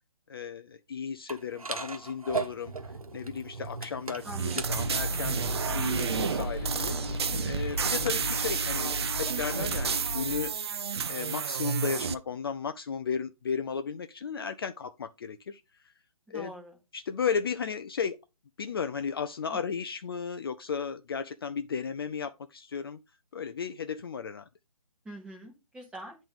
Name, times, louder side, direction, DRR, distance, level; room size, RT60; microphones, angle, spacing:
voice 1, 0.3-2.7 3.1-4.3 4.5-5.4 5.7-10.6 11.1-15.9 16.3-16.5 16.9-18.2 18.6-23.0 23.3-24.5, left 6 dB, 40° left, 0.4 m, -34 dB
sound 1, 1.3-8.4, right 3 dB, 80° right, 1.1 m, -39 dB
voice 2, 4.2-4.7 16.3-16.8 19.5-19.6 25.0-26.1, right 1 dB, 5° right, 1.3 m, -44 dB
sound 2, 4.2-12.1, right 7 dB, 45° right, 0.5 m, -31 dB
sound 3, 4.8-10.5, left 1 dB, 20° left, 0.9 m, -35 dB
8.6 x 3.1 x 5.1 m
figure-of-eight pair, 140°, 18 cm